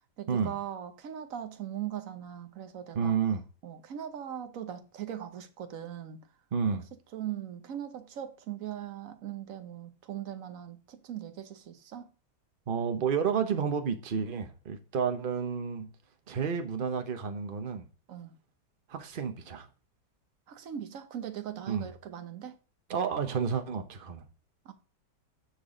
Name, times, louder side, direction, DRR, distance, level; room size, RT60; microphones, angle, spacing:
voice 1, 0.2-3.2 3.6-6.2 7.1-12.1 18.1-18.4 20.5-22.6 24.6-24.7, right 10 dB, 55° right, 1.3 m, -40 dB
voice 2, 2.9-3.4 6.5-6.9 12.7-15.9 16.3-17.9 18.9-19.7 21.7-21.9 22.9-24.3, right 6 dB, 40° right, 1.0 m, -30 dB
10.0 x 6.1 x 3.8 m
omnidirectional pair, 1.8 m